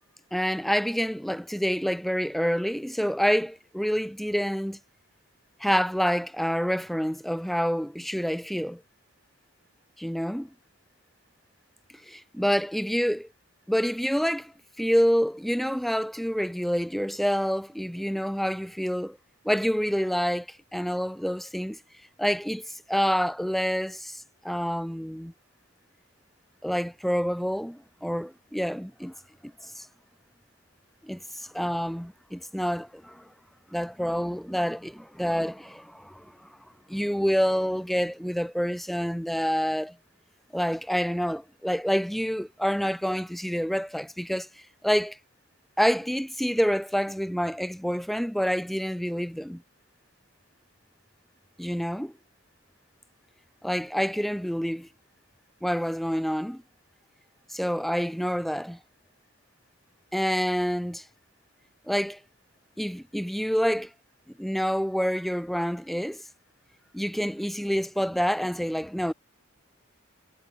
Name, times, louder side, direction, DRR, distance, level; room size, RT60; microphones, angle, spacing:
voice 1, 0.3-4.8 5.6-8.8 10.0-10.5 12.1-13.3 13.7-14.5 14.8-19.2 19.4-20.5 20.7-21.8 22.2-25.3 26.6-29.1 29.4-29.9 31.0-33.2 33.7-36.3 36.9-40.0 40.5-44.5 44.8-45.2 45.8-49.6 51.6-52.1 53.6-54.9 55.6-56.6 57.5-58.8 60.1-61.0 61.9-62.2 62.8-63.9 64.4-66.2 66.9-69.1, equal, ahead, 0.6 m, -27 dB
head